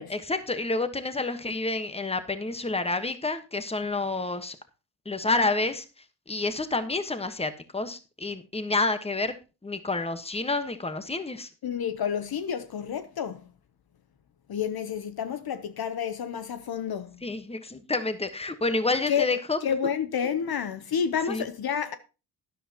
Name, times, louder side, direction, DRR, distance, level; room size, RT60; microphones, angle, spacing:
voice 1, 0.1-4.5 5.0-5.8 6.3-9.3 9.6-11.5 17.2-19.6 21.3-21.5, left 3 dB, 15° left, 1.2 m, -29 dB
voice 2, 11.6-13.4 14.5-17.2 19.1-19.3 19.6-22.0, left 7 dB, 60° left, 0.9 m, -29 dB
13.0 x 10.0 x 2.9 m
cardioid pair, 80°, 42 cm